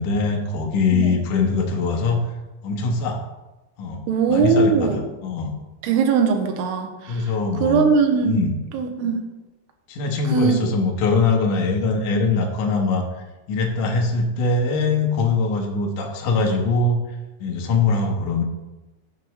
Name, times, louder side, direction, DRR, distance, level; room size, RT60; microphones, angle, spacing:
voice 1, 0.0-2.2 2.6-3.2 3.8-4.0 4.3-5.6 7.1-7.8 8.2-8.5 9.9-13.0 13.5-17.0 17.4-18.4, left 3 dB, 65° left, 0 dB, 2.2 m, -22 dB
voice 2, 0.9-1.2 4.1-5.0 5.8-7.3 7.6-8.4 8.7-9.2 10.3-10.7, right 5 dB, 80° right, 4 dB, 2.9 m, -20 dB
14.5 x 7.0 x 3.2 m, 1.1 s
omnidirectional pair, 4.8 m